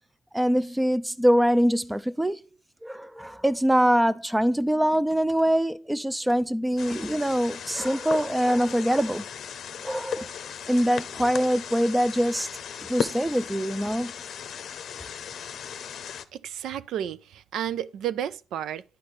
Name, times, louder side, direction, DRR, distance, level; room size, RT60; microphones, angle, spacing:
voice 1, 0.3-2.4 2.8-9.2 9.8-10.3 10.7-12.5 12.9-14.1, equal, 5° right, 0.5 m, -24 dB
sound 1, 6.8-16.2, left 8 dB, 65° left, 0.6 m, -36 dB
voice 2, 16.3-18.8, right 10 dB, 80° right, 0.4 m, -32 dB
11.5 x 4.2 x 3.2 m
cardioid pair, 90°, 0 cm